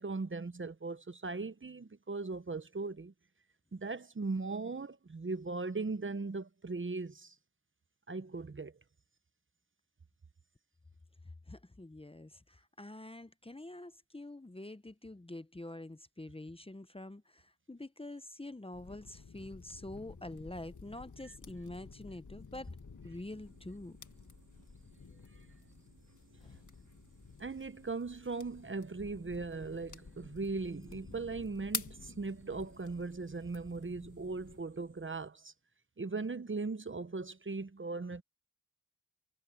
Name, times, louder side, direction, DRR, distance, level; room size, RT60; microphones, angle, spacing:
voice 1, 0.0-3.1 3.7-7.3 8.1-8.8 27.4-35.5 36.0-38.2, right 3 dB, 40° right, 0.8 m, -39 dB
voice 2, 11.2-22.8 23.0-24.0 26.4-26.6, left 2 dB, 20° left, 0.7 m, -46 dB
sound 1, 18.7-34.6, left 4 dB, 80° left, 1.7 m, -49 dB
sound 2, 23.2-35.3, right 3 dB, 80° right, 3.3 m, -65 dB
wide cardioid pair, 55°, 30 cm